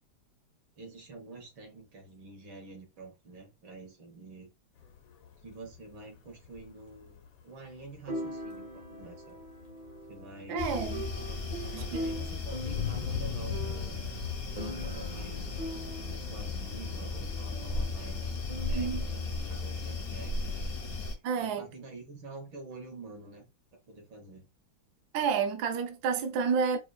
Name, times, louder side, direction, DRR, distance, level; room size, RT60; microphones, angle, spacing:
voice 1, 0.8-4.5 5.4-9.4 10.1-10.6 11.1-11.4 11.6-14.1 14.5-15.6 16.1-18.3 18.7-20.7 21.4-23.5 23.7-24.5, right 3 dB, 85° right, 2.1 m, -48 dB
sound 1, 4.8-20.0, left 8 dB, 85° left, 1.5 m, -43 dB
sound 2, 6.5-6.6 8.1-19.3, right 1 dB, 30° right, 0.5 m, -42 dB
voice 2, 10.5-11.1 11.7-12.0 18.7-19.0 21.2-21.7 25.1-26.8, right 6 dB, 70° right, 1.0 m, -30 dB
sound 3, 10.6-21.1, left 3 dB, 65° left, 0.6 m, -36 dB
4.8 x 2.4 x 2.3 m
omnidirectional pair, 2.1 m